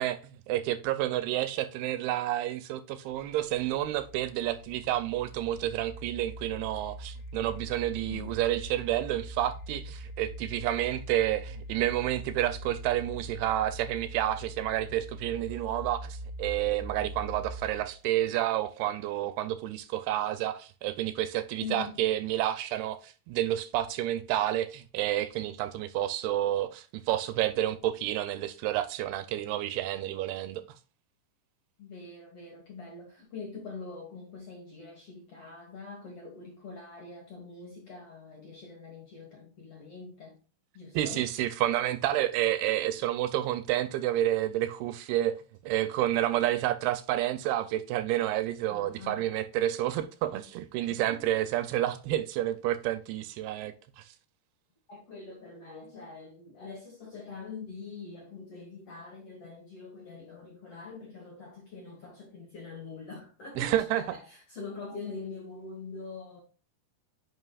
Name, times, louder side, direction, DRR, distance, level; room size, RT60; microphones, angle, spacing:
voice 1, 0.0-30.6 41.0-54.1 63.6-64.0, right 13 dB, 80° right, 2.4 m, -30 dB
sound 1, 3.5-18.0, right 1 dB, 80° left, 1.8 m, -43 dB
voice 2, 21.6-22.0 31.8-40.4 40.7-41.2 48.7-49.4 50.9-51.5 54.9-66.4, left 4 dB, 55° left, 1.8 m, -44 dB
9.7 x 5.4 x 2.4 m
omnidirectional pair, 4.7 m